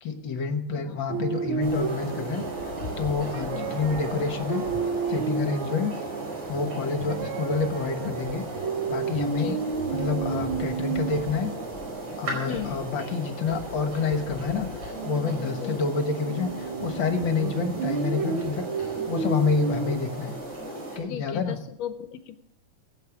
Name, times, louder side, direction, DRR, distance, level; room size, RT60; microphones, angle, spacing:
voice 1, 0.0-2.4 3.0-4.6 5.1-6.0 6.5-8.4 8.8-9.5 9.9-11.5 12.2-18.7 19.1-20.3 20.9-21.6, left 5 dB, 55° left, 7 dB, 1.5 m, -28 dB
sound 1, 1.1-20.0, right 6 dB, 75° right, 1.2 m, -33 dB
sound 2, 1.6-21.0, right 1 dB, 50° right, 5.8 m, -36 dB
voice 2, 21.1-22.4, left 9 dB, 75° left, 11 dB, 1.7 m, -35 dB
19.5 x 8.6 x 5.9 m, 0.80 s
omnidirectional pair, 3.4 m